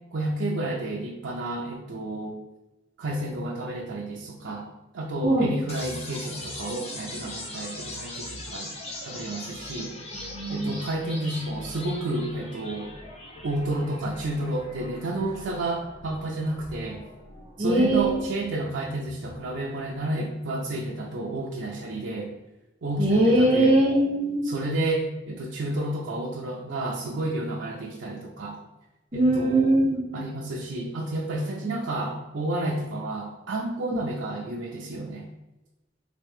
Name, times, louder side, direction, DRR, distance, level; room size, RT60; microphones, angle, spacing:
voice 1, 0.1-2.4 3.0-4.7 4.9-8.7 9.0-9.9 10.5-12.9 13.4-17.0 17.6-22.3 22.8-23.8 24.4-28.6 29.1-29.8 30.1-35.3, right 1 dB, 65° right, -2 dB, 0.4 m, -31 dB
sound 1, 5.7-19.7, left 1 dB, 35° left, 0.6 m, -41 dB
voice 2, 10.2-10.7 17.6-18.3 23.0-24.4 29.1-30.0 33.9-34.0, right 1 dB, 30° right, -3 dB, 0.9 m, -21 dB
3.2 x 2.9 x 3.5 m, 1.0 s
head